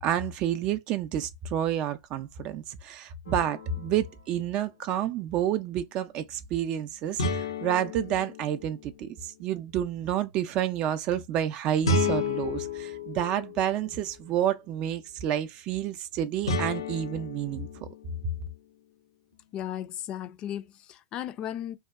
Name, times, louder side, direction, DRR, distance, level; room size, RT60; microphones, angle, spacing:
voice 1, 0.0-17.9, right 10 dB, 40° right, 0.3 m, -29 dB
sound 1, 3.3-4.2 7.2-9.4 11.8-14.0 16.5-18.7, left 2 dB, 85° left, 0.6 m, -32 dB
voice 2, 19.5-21.8, left 11 dB, 35° left, 0.3 m, -35 dB
2.6 x 2.2 x 2.3 m
hypercardioid pair, 110°, 2 cm